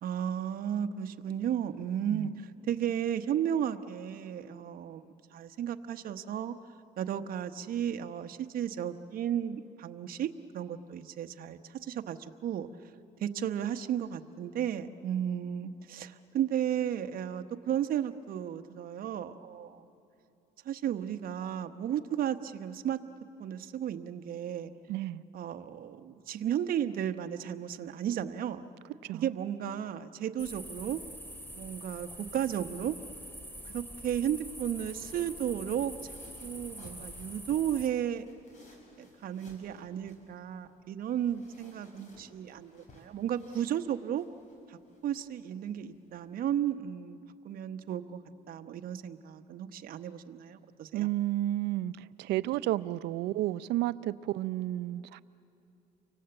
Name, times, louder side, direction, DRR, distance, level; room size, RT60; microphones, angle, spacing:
voice 1, 0.0-6.5 7.0-12.7 13.2-19.8 20.6-23.0 23.4-24.7 25.3-28.7 29.1-31.0 31.5-33.0 33.6-36.1 36.4-38.2 39.0-44.3 44.7-47.2 47.4-48.2 48.5-51.1, right 10 dB, 60° right, 8 dB, 1.1 m, -34 dB
voice 2, 24.9-25.2 29.0-29.3 50.9-55.2, right 15 dB, 80° right, 16 dB, 0.6 m, -32 dB
sound 1, 30.4-37.9, equal, 10° left, 3.1 m, -45 dB
sound 2, 34.2-46.3, left 2 dB, 45° left, 6.3 m, -60 dB
30.0 x 24.5 x 7.9 m, 2.8 s
cardioid pair, 110°, 17 cm